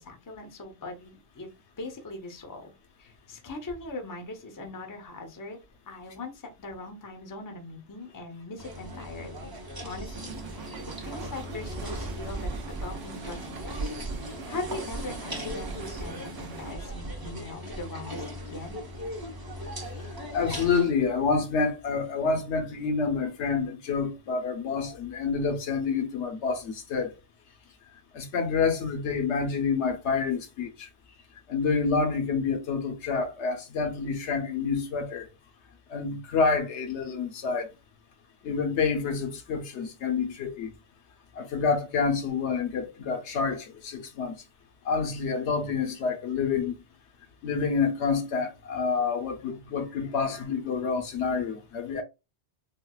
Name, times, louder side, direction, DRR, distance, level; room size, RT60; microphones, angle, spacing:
voice 1, 0.0-1.5 1.8-2.7 3.0-5.6 5.9-9.5 9.8-10.8 11.0-18.8, left 2 dB, 25° left, 0.5 m, -41 dB
sound 1, 8.6-20.8, right 1 dB, 25° right, 0.6 m, -37 dB
sound 2, 10.1-16.7, right 5 dB, 90° right, 0.9 m, -43 dB
voice 2, 20.3-27.1 28.1-30.9 31.5-35.3 35.9-37.7 38.4-40.7 41.4-44.4 44.8-46.7 47.4-52.0, left 5 dB, 75° left, 0.9 m, -28 dB
3.8 x 2.1 x 2.3 m
omnidirectional pair, 1.2 m